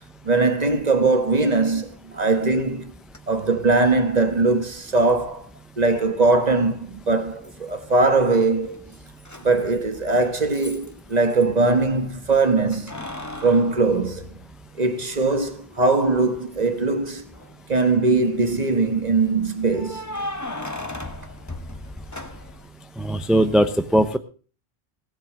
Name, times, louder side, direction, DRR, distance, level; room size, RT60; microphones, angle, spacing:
voice 1, 0.2-2.9 3.3-5.5 5.8-8.9 9.4-12.9 13.4-14.4 14.8-17.2 17.7-20.0, right 3 dB, 40° right, 1.9 m, -21 dB
Keys jangling, 3.1-3.2 5.1-5.2 7.4-8.0 8.3-11.5 12.7-14.8 15.3-15.4 17.2-17.8 19.7-22.7, left 1 dB, 15° left, 1.3 m, -36 dB
voice 2, 23.0-24.2, right 1 dB, ahead, 0.6 m, -19 dB
16.5 x 7.4 x 7.4 m
omnidirectional pair, 1.1 m